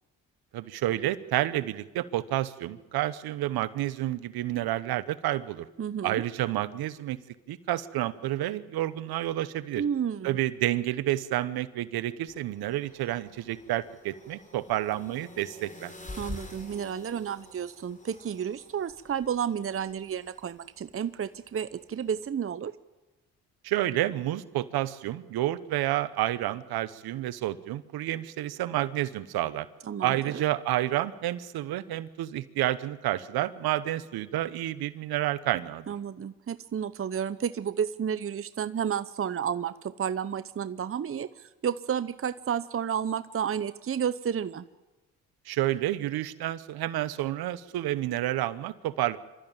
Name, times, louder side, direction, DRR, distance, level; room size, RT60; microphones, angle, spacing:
voice 1, 0.5-5.7 6.0-7.2 7.5-9.8 10.2-15.9 23.6-29.7 30.0-35.8 45.5-49.2, right 14 dB, 75° right, 16 dB, 1.0 m, -30 dB
voice 2, 5.8-6.2 9.8-10.4 16.2-22.7 29.9-30.4 35.9-44.6, right 8 dB, 35° right, 14 dB, 0.8 m, -31 dB
sound 1, 12.3-22.3, left 2 dB, 20° left, 4.9 m, -48 dB
25.5 x 13.0 x 8.9 m, 1.1 s
supercardioid pair, 55°, 37 cm